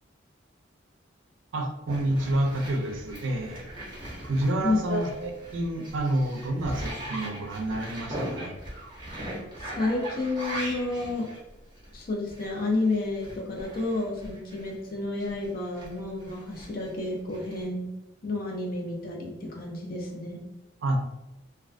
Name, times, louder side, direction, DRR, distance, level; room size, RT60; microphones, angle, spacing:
voice 1, 1.5-3.7 4.2-8.6 20.8-21.0, right 1 dB, 75° right, 4 dB, 0.4 m, -29 dB
sound 1, 1.9-14.8 15.2-17.6, right 1 dB, 25° right, 0.8 m, -40 dB
voice 2, 4.6-5.0 9.6-11.3 11.9-17.9 18.2-20.4, left 2 dB, 50° left, 0 dB, 0.5 m, -30 dB
2.3 x 2.2 x 2.4 m, 0.93 s
head